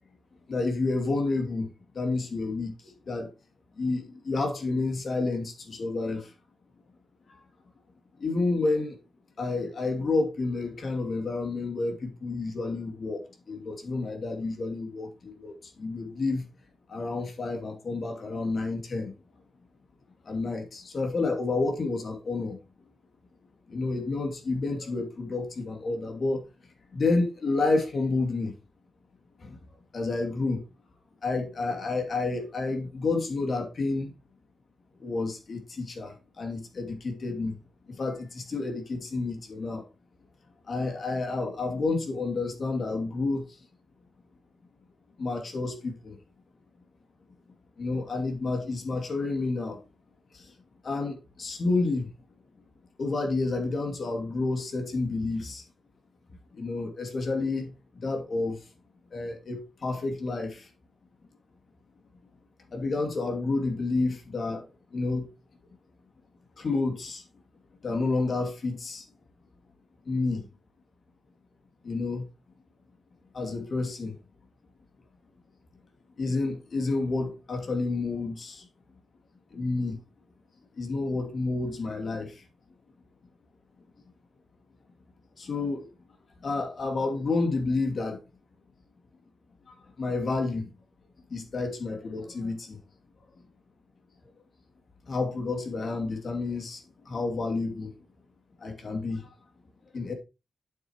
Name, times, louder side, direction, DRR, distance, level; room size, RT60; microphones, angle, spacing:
voice 1, 0.5-1.7 1.9-3.3 3.8-6.3 8.2-9.0 9.4-16.4 16.9-19.1 20.2-22.6 23.7-26.5 26.9-28.5 29.4-29.6 29.9-30.6 31.2-34.1 35.0-37.6 37.9-39.9 40.7-43.5 45.2-46.2 47.8-49.8 50.3-50.5 50.8-52.1 53.0-55.6 56.5-58.6 59.1-60.7 62.7-64.6 64.9-65.3 66.6-67.2 67.8-69.0 70.1-70.5 71.8-72.3 73.3-74.1 76.2-78.7 79.5-80.0 80.8-82.4 85.4-85.9 86.4-88.2 89.7-90.7 91.3-92.8 95.1-97.9 98.6-99.3 99.9-100.1, left 3 dB, 50° left, 2.6 m, -30 dB
8.7 x 7.8 x 3.0 m
wide cardioid pair, 120°, 0 cm